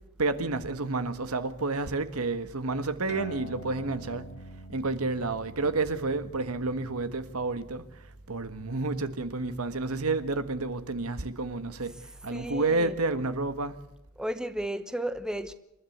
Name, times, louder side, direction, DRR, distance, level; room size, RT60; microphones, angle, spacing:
voice 1, 0.2-4.3 4.7-7.8 8.3-11.9 12.2-13.8, right 3 dB, 85° right, 1.5 m, -30 dB
sound 1, 3.1-10.0, equal, 50° left, 2.1 m, -48 dB
voice 2, 12.3-13.0 14.2-15.5, right 1 dB, 5° right, 1.0 m, -33 dB
28.0 x 12.5 x 8.1 m
head